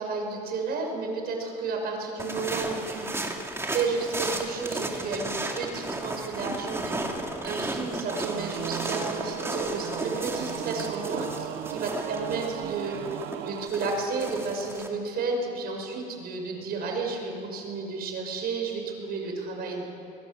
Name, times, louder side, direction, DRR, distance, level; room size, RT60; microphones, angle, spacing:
voice 1, 0.0-3.1 3.7-7.1 7.4-13.0 13.4-19.9, right 4 dB, 65° right, 2 dB, 6.1 m, -32 dB
sound 1, 2.2-14.9, right 2 dB, 15° right, 2.8 m, -34 dB
Singing / Musical instrument, 8.1-13.7, right 13 dB, 85° right, 0.7 m, -36 dB
22.0 x 22.0 x 7.8 m, 2.6 s
cardioid pair, 110°, 17 cm